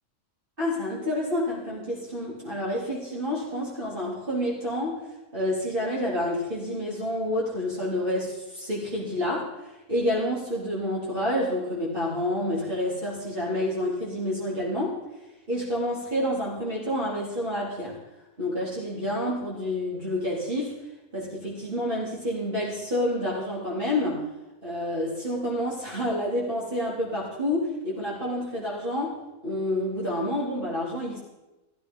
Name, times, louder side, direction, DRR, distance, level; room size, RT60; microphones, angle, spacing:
voice 1, 0.6-5.0 5.3-15.0 15.5-18.0 18.4-20.8 21.1-24.2 24.6-31.2, left 1 dB, 40° right, -6 dB, 3.9 m, -29 dB
15.0 x 14.0 x 5.6 m, 1.0 s
omnidirectional pair, 1.4 m